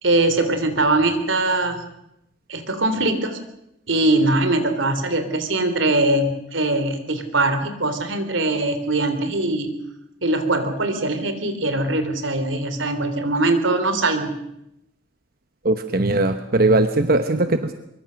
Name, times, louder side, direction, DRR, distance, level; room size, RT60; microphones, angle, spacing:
voice 1, 0.0-1.8 2.5-3.4 3.9-9.8 10.2-14.4 17.3-17.7, right 2 dB, 85° right, 9 dB, 3.3 m, -22 dB
voice 2, 15.6-17.7, right 2 dB, 50° right, 9 dB, 1.0 m, -19 dB
24.0 x 23.0 x 6.4 m, 0.82 s
head